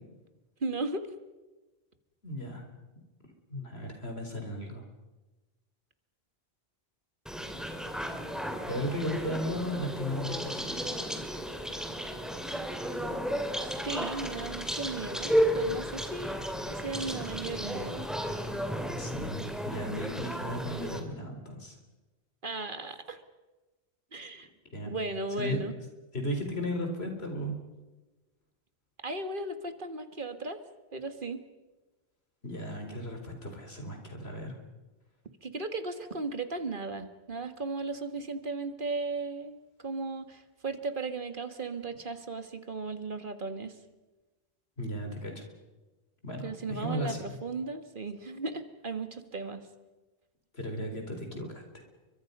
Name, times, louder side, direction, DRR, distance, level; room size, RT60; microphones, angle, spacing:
voice 1, 0.6-1.1 13.6-16.4 16.7-18.1 22.4-23.2 24.1-24.5 24.9-25.7 29.0-30.6 30.9-31.4 35.4-43.8 46.4-49.6, right 3 dB, 55° right, 9 dB, 1.8 m, -36 dB
voice 2, 2.2-2.7 3.5-4.8 8.7-11.0 19.0-21.7 24.7-24.9 25.4-25.6 26.1-27.6 32.4-34.6 44.8-45.4 46.2-47.3 50.5-51.6, equal, 80° left, 4 dB, 4.2 m, -35 dB
sound 1, 7.3-21.0, equal, ahead, 2.6 m, -33 dB
30.0 x 24.0 x 5.4 m, 1.2 s
omnidirectional pair, 1.1 m